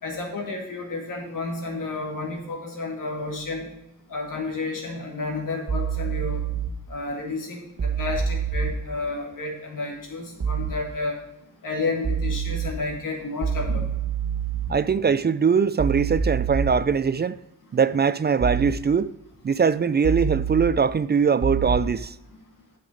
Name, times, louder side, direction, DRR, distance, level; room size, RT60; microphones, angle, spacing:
voice 1, 0.0-3.7 4.1-6.4 6.9-11.2 11.6-13.9, left 3 dB, 90° left, 2.0 m, -31 dB
sound 1, 5.7-6.7 7.8-8.7 10.4-10.7 12.0-12.7 13.4-14.7 15.8-16.7 18.4-18.7 20.0-20.7 21.4-21.8, right 7 dB, 55° right, 1.2 m, -26 dB
voice 2, 14.7-17.4 17.7-19.1 19.4-22.1, right 6 dB, 35° right, 0.4 m, -21 dB
9.1 x 6.0 x 5.0 m
cardioid pair, 60°, 31 cm